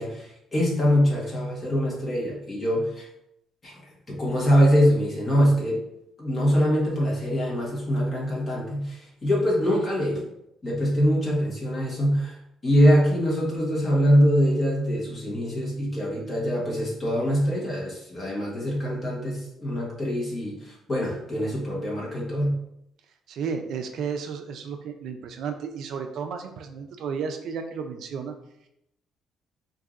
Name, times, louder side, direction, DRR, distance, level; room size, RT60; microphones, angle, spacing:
voice 1, 0.0-3.1 3.6-3.8 4.1-5.8 6.2-10.2 10.6-12.4 12.6-22.5, equal, 30° left, -4 dB, 1.2 m, -23 dB
voice 2, 23.3-28.3, right 6 dB, 65° right, 6 dB, 0.4 m, -33 dB
4.5 x 2.6 x 2.5 m, 0.79 s
cardioid pair, 135°, 0 cm